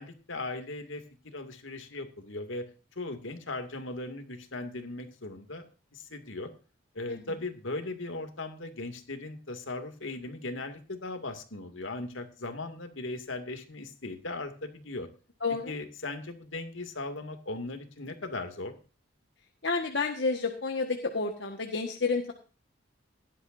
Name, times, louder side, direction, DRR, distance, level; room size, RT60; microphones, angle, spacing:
voice 1, 0.0-2.7 3.0-6.5 6.9-15.1 15.7-18.7, left 2 dB, 80° left, 7 dB, 2.5 m, -38 dB
voice 2, 15.4-15.7 19.6-22.3, left 4 dB, 60° left, 3 dB, 1.6 m, -30 dB
17.0 x 12.0 x 2.7 m, 0.34 s
head